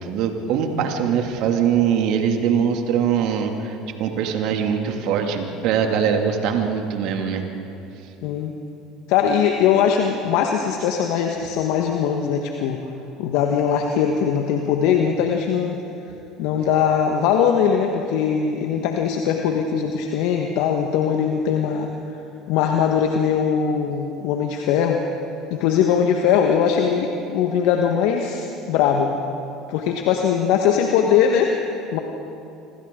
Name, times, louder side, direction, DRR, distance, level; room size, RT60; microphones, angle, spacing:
voice 1, 0.0-7.4, right 7 dB, 65° right, 4 dB, 2.4 m, -22 dB
voice 2, 8.2-8.5 9.1-12.8 13.2-15.8 16.4-21.9 22.5-25.0 25.5-29.1 29.7-31.6 31.9-32.0, left 7 dB, 70° left, 3 dB, 1.4 m, -20 dB
27.0 x 26.5 x 3.9 m, 2.8 s
hypercardioid pair, 70°, 0 cm